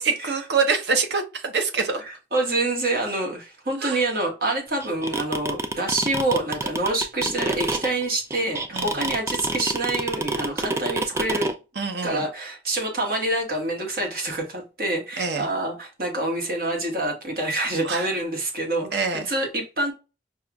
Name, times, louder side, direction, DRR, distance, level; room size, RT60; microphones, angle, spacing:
voice 1, 0.0-2.0 3.8-4.0 8.7-9.1 11.8-12.2 15.2-15.5 17.8-18.1 18.9-19.3, right 5 dB, 75° right, 0.8 m, -25 dB
voice 2, 2.0-11.5 12.0-19.9, right 2 dB, 55° right, 1.3 m, -26 dB
sound 1, 4.8-11.5, right 3 dB, 15° right, 0.3 m, -26 dB
5.5 x 2.4 x 2.3 m
head